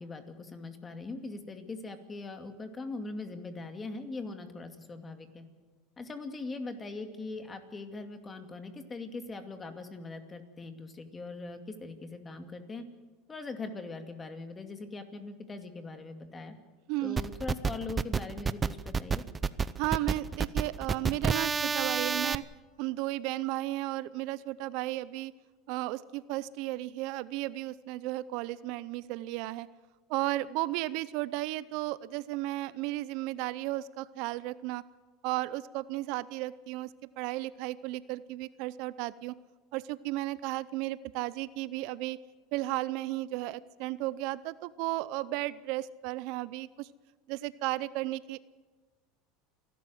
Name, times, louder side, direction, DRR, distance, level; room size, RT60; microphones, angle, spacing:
voice 1, 0.0-5.4 6.0-12.8 13.3-16.5 17.0-19.2, left 3 dB, 20° left, 7 dB, 2.4 m, -41 dB
voice 2, 16.9-17.2 19.8-22.4 22.8-25.3 25.7-29.7 30.1-34.8 35.2-36.9 37.2-39.4 39.7-42.2 42.5-46.9 47.3-48.4, right 17 dB, 65° right, 18 dB, 0.5 m, -34 dB
sound 1, 17.2-22.4, right 5 dB, 20° right, 0.6 m, -29 dB
28.5 x 12.0 x 7.9 m, 1.3 s
supercardioid pair, 120°, 0 cm